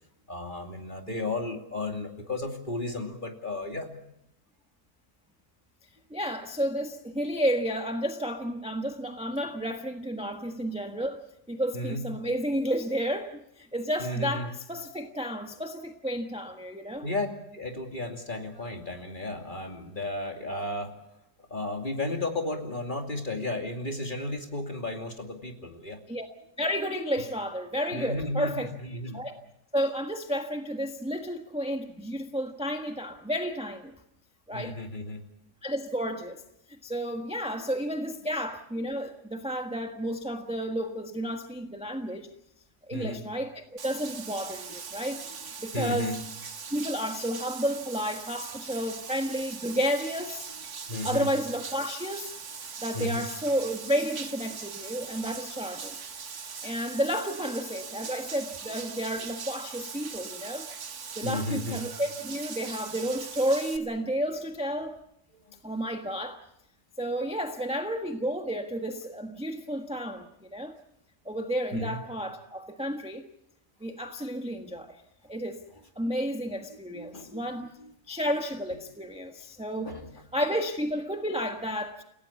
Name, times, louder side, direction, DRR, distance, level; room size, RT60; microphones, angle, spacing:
voice 1, 0.3-4.0 11.7-12.1 14.0-14.5 17.0-17.3 17.5-20.9 21.5-26.0 27.9-29.2 34.5-35.2 42.9-43.2 45.7-46.2 50.9-51.3 52.9-53.3 61.2-61.8 65.3-65.6 71.7-72.0 76.9-77.4 77.8-77.9 79.8-80.1, left 2 dB, 30° left, 3 dB, 2.8 m, -33 dB
voice 2, 6.1-17.1 26.1-26.3 26.6-28.7 29.1-29.4 29.7-33.9 34.5-34.8 35.6-36.4 36.7-42.3 42.9-45.2 45.6-46.2 46.7-50.5 51.0-52.4 52.8-56.0 56.6-60.7 61.1-65.0 65.6-66.4 67.0-70.7 71.2-73.2 73.8-75.0 75.3-75.6 75.9-77.7 78.1-80.0 80.3-82.0, equal, 5° right, 4 dB, 1.3 m, -31 dB
Bathtub (filling or washing), 43.8-63.8, right 6 dB, 65° right, 2.0 m, -41 dB
29.5 x 17.0 x 7.1 m, 0.81 s
omnidirectional pair, 1.8 m